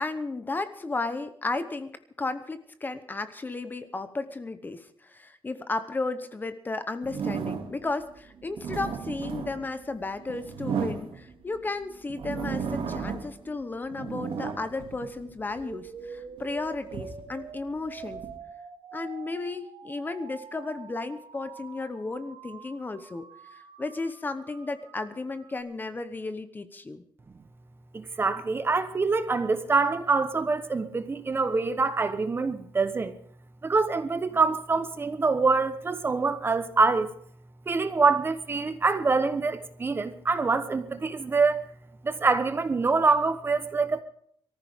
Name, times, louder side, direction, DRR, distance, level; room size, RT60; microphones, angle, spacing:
voice 1, 0.0-18.2 18.9-23.2 23.5-27.0, left 3 dB, 20° left, 1.0 m, -34 dB
sound 1, 7.0-7.9 8.4-11.6 12.1-13.4 13.7-15.7 16.2-18.3, right 6 dB, 90° right, 2.5 m, -34 dB
sound 2, 15.6-25.6, right 6 dB, 65° right, 2.4 m, -46 dB
voice 2, 27.9-33.1 33.6-37.1 37.7-41.6 42.0-44.0, right 4 dB, 25° right, 1.0 m, -25 dB
23.5 x 14.5 x 3.6 m
wide cardioid pair, 175°, 9 cm